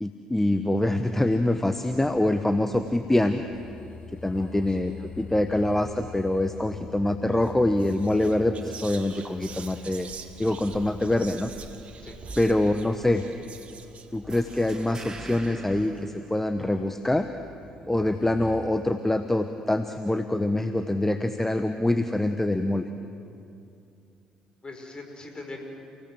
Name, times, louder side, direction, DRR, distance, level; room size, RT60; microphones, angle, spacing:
voice 1, 0.0-3.4 4.2-10.1 10.4-11.5 12.4-13.2 14.1-17.3 17.9-22.9, left 1 dB, 10° left, 8 dB, 1.2 m, -25 dB
sound 1, 0.8-18.7, left 5 dB, 45° left, 3.1 m, -47 dB
voice 2, 4.3-5.3 12.0-12.2 24.6-25.6, left 2 dB, 30° left, 3 dB, 5.6 m, -43 dB
Whispering, 7.3-7.5 7.8-15.9, right 5 dB, 45° right, 1.8 m, -45 dB
sound 2, 14.3-17.0, right 2 dB, 25° right, 2.3 m, -44 dB
30.0 x 17.5 x 7.8 m, 2.6 s
hypercardioid pair, 50°, 3 cm